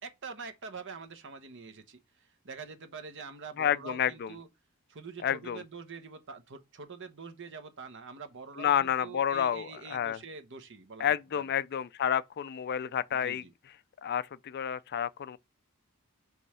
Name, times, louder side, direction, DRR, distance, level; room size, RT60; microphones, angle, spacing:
voice 1, 0.0-4.5 4.9-11.4 13.1-13.5, right 5 dB, 55° right, 1.0 m, -45 dB
voice 2, 3.6-4.4 5.2-5.6 8.6-10.2 11.0-13.4 14.0-15.4, left 9 dB, 50° left, 0.4 m, -30 dB
5.4 x 3.1 x 5.5 m
head